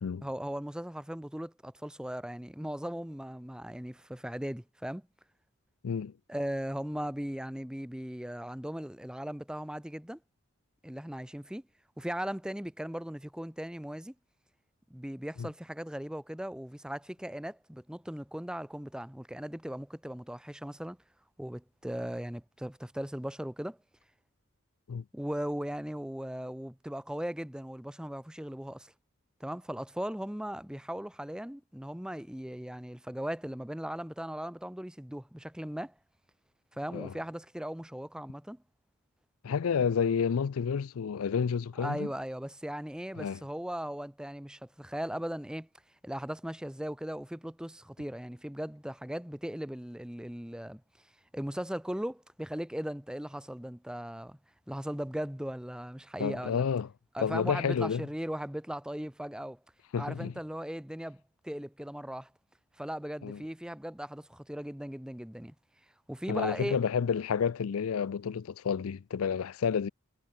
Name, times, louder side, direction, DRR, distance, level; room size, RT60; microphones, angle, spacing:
voice 1, 0.2-5.0 6.3-10.2 10.8-11.6 12.0-14.1 14.9-21.0 21.4-23.8 25.1-28.9 29.4-35.9 36.7-38.6 41.8-45.7 46.0-50.8 51.3-54.4 54.7-56.6 57.1-59.6 60.0-62.3 62.8-65.5 66.1-66.8, equal, 5° right, 0.7 m, -38 dB
voice 2, 39.4-42.1 43.2-43.4 56.2-56.9 57.2-58.1 59.9-60.3 63.2-63.4 66.3-69.9, left 6 dB, 75° left, 0.4 m, -30 dB
head